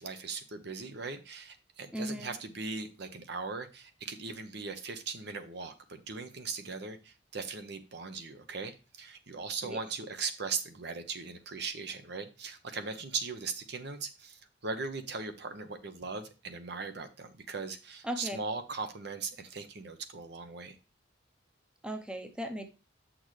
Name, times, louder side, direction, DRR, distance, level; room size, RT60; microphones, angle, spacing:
voice 1, 0.0-20.8, right 4 dB, 65° right, 8 dB, 1.0 m, -39 dB
voice 2, 1.9-2.3 9.6-9.8 18.0-18.4 21.8-22.6, equal, 5° right, 6 dB, 0.7 m, -37 dB
7.6 x 6.3 x 3.2 m, 0.31 s
head